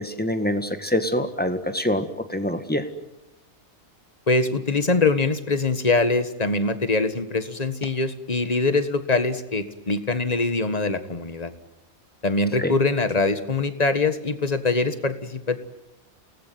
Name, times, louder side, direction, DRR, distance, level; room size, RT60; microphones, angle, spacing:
voice 1, 0.0-2.9 12.6-12.7, left 1 dB, 5° left, 8 dB, 1.8 m, -25 dB
voice 2, 4.3-11.5 12.2-15.6, left 3 dB, 30° left, 10 dB, 1.7 m, -23 dB
29.0 x 19.5 x 9.4 m, 0.90 s
omnidirectional pair, 1.4 m